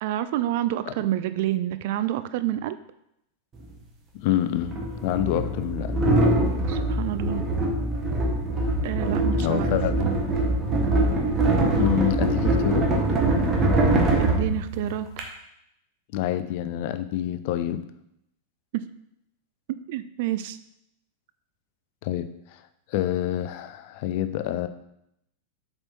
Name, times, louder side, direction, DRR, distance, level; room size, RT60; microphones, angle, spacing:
voice 1, 0.0-2.8 6.7-7.4 8.8-9.8 14.2-15.1 18.7-18.8 19.9-20.6, right 13 dB, 50° right, 12 dB, 0.4 m, -28 dB
sound 1, 3.6-3.7 4.6-15.2, right 2 dB, 25° right, 1.3 m, -23 dB
voice 2, 4.2-4.7 5.0-6.0 9.3-10.1 11.7-12.9 16.1-17.8 22.0-22.3 22.9-24.7, left 12 dB, 50° left, 11 dB, 0.5 m, -27 dB
7.6 x 4.4 x 4.4 m, 0.80 s
figure-of-eight pair, 90°, 0 cm